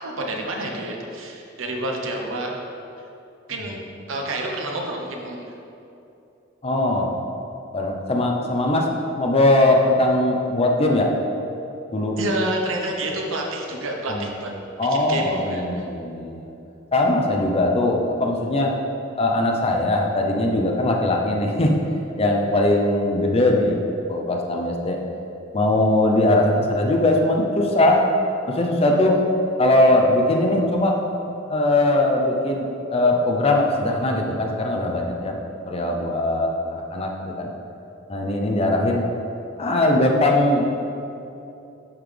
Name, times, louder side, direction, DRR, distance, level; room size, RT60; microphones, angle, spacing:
voice 1, 0.0-2.6 3.5-3.8 4.1-5.5 12.2-14.5 14.9-15.9, right 1 dB, 80° right, 0 dB, 0.9 m, -28 dB
voice 2, 6.6-7.1 7.7-8.9 9.2-11.1 11.9-12.2 14.1-14.3 14.8-16.5 16.9-18.7 19.2-21.7 22.2-23.8 24.1-25.0 25.5-28.0 28.5-29.2 29.6-31.0 31.5-36.5 36.9-37.5 38.1-39.1 39.6-40.7, left 1 dB, 30° left, 1 dB, 0.6 m, -20 dB
11.5 x 3.9 x 3.3 m, 2.8 s
head